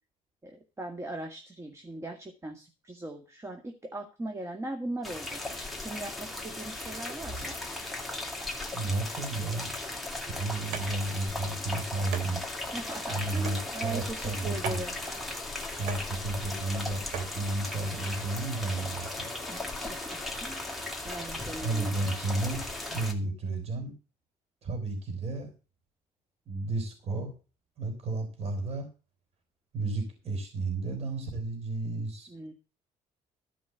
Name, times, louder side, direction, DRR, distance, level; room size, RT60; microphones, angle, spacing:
voice 1, 0.4-5.4 5.8-7.6 12.7-14.9 19.5-20.6 21.0-21.9 32.3-32.5, right 1 dB, 20° right, 4 dB, 1.9 m, -39 dB
sound 1, 5.0-23.1, left 2 dB, ahead, 2.6 m, -37 dB
voice 2, 8.7-9.7 10.2-12.4 13.1-14.8 15.7-19.3 21.6-22.6 22.9-24.0 24.6-25.5 26.5-27.3 27.8-28.9 29.7-32.3, right 2 dB, 50° right, 5 dB, 4.4 m, -32 dB
sound 2, 10.7-17.4, right 7 dB, 90° right, 3.0 m, -43 dB
13.0 x 5.3 x 8.0 m, 0.32 s
cardioid pair, 100°, 14 cm